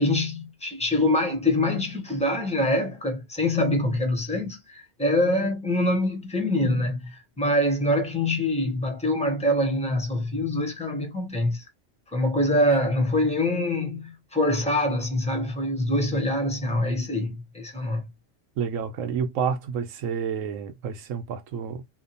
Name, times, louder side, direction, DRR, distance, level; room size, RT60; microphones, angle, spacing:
voice 1, 0.0-11.6 12.1-18.0, left 1 dB, 10° left, 0.5 m, -25 dB
voice 2, 18.6-21.8, right 7 dB, 80° right, 1.0 m, -29 dB
2.8 x 2.1 x 2.6 m
omnidirectional pair, 1.3 m